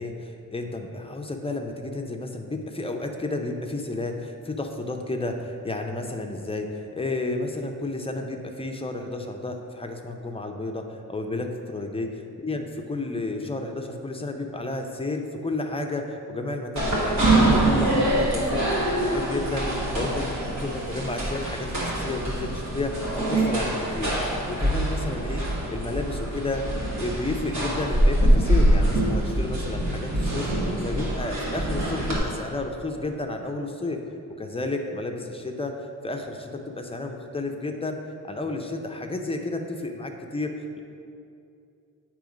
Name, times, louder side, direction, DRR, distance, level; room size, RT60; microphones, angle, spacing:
voice 1, 0.0-24.1 24.5-26.7 27.0-30.5 30.8-34.0 34.4-35.8 36.0-38.0 38.2-40.8, left 2 dB, 20° left, 3 dB, 0.5 m, -32 dB
sound 1, 16.8-32.2, right 1 dB, 65° right, 1.5 m, -24 dB
9.1 x 3.0 x 5.0 m, 2.6 s
wide cardioid pair, 135°, 32 cm